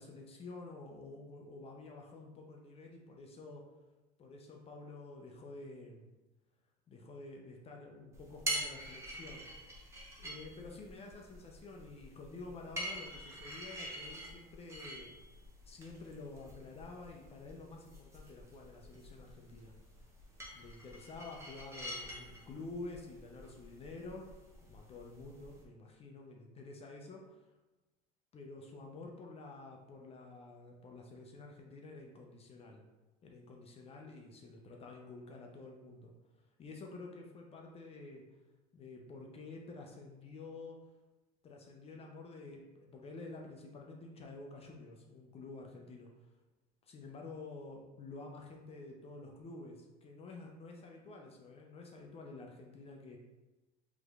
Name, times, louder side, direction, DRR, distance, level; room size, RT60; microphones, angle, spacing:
voice 1, 0.0-3.7 4.2-6.1 6.9-9.9 10.2-15.2 15.7-19.7 20.5-24.4 24.6-27.5 28.3-32.8 33.2-36.1 36.6-38.2 38.7-40.8 41.4-46.1 46.9-53.2, left 3 dB, 30° left, 1 dB, 0.6 m, -50 dB
sound 1, 8.1-25.6, right 1 dB, 15° right, 0.9 m, -46 dB
4.8 x 3.1 x 2.4 m, 1.1 s
supercardioid pair, 105°, 19 cm